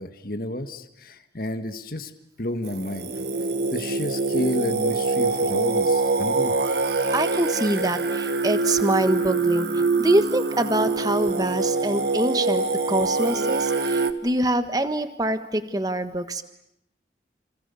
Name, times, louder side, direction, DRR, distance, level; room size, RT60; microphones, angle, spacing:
voice 1, 0.0-2.1 2.4-3.1 3.7-6.6, left 1 dB, 50° left, 7 dB, 1.7 m, -31 dB
Singing, 2.6-14.1, right 3 dB, 65° right, 1.5 m, -24 dB
voice 2, 7.1-16.4, right 1 dB, 20° right, 9 dB, 1.4 m, -25 dB
29.5 x 27.5 x 7.0 m, 0.77 s
head